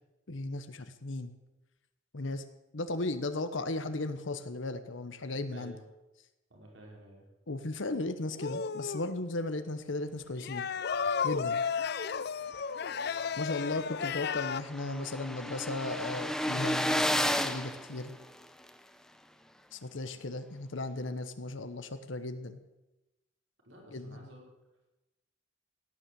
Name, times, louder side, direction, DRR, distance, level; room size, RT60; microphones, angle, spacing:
voice 1, 0.3-1.4 2.1-2.4 2.7-5.8 7.5-10.7 11.2-11.6 13.4-18.2 19.7-22.6 23.9-24.3, left 2 dB, 75° left, 10 dB, 1.0 m, -36 dB
voice 2, 5.5-5.9 6.5-7.2 23.6-24.5, right 1 dB, 70° right, -1 dB, 4.6 m, -52 dB
sound 1, 8.3-9.2 10.4-14.6, left 6 dB, 55° left, 0.5 m, -33 dB
sound 2, 13.1-13.2 13.6-13.7 13.8-18.7, left 1 dB, 5° left, 0.7 m, -33 dB
17.0 x 9.9 x 7.6 m, 1.0 s
head